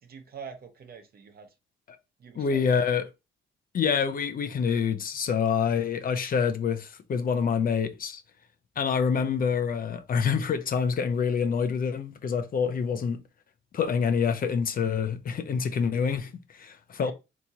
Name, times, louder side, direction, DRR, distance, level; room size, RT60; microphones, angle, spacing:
voice 1, 0.0-1.5 2.2-2.8 17.0-17.1, right 6 dB, 50° right, 0.9 m, -45 dB
voice 2, 2.4-3.0 3.7-8.2 8.8-13.2 13.7-17.1, left 6 dB, 45° left, 0.5 m, -26 dB
3.5 x 2.9 x 2.8 m
cardioid pair, 90°, 20 cm